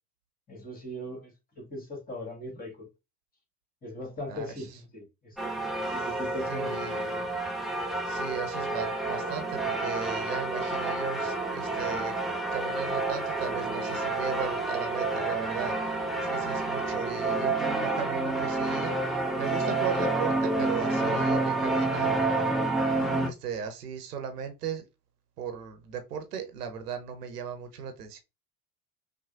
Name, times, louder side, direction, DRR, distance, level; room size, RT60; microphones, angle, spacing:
voice 1, 0.5-2.9 3.8-6.9, left 1 dB, 20° left, 2.0 m, -40 dB
voice 2, 4.3-4.6 6.5-7.3 8.1-22.1 23.0-24.8 25.4-28.2, right 7 dB, 75° right, 0.9 m, -37 dB
sound 1, 5.4-23.3, right 2 dB, ahead, 0.8 m, -29 dB
5.8 x 2.2 x 2.5 m
figure-of-eight pair, 65°, 47 cm